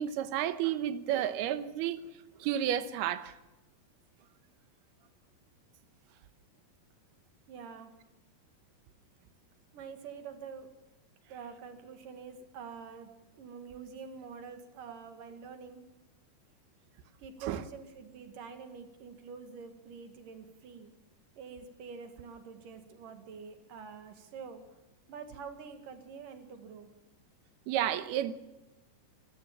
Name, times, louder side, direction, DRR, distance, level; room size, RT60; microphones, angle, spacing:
voice 1, 0.0-2.0 2.4-3.3 17.5-17.6 27.7-28.3, right 11 dB, 80° right, 2.9 m, -31 dB
voice 2, 7.5-7.9 9.7-10.7 11.3-15.9 17.2-20.9 21.4-24.6 25.1-26.9, right 6 dB, 60° right, 3.4 m, -46 dB
24.5 x 15.5 x 7.3 m
omnidirectional pair, 4.6 m